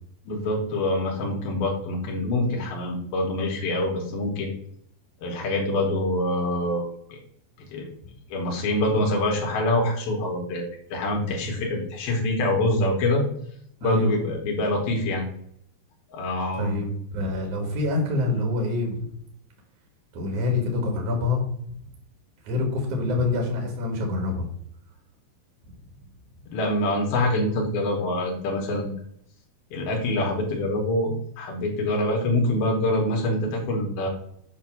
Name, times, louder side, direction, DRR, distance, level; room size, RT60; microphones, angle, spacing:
voice 1, 0.3-4.5 5.2-7.2 7.7-7.9 8.3-10.6 10.9-13.2 13.8-15.3 16.1-16.8 26.5-28.9 29.7-34.1, left 1 dB, 70° left, 0 dB, 2.8 m, -25 dB
voice 2, 13.8-14.1 16.6-19.1 20.1-21.4 22.4-24.5, left 2 dB, 60° right, 1 dB, 1.7 m, -26 dB
7.7 x 2.6 x 5.9 m, 0.68 s
omnidirectional pair, 4.9 m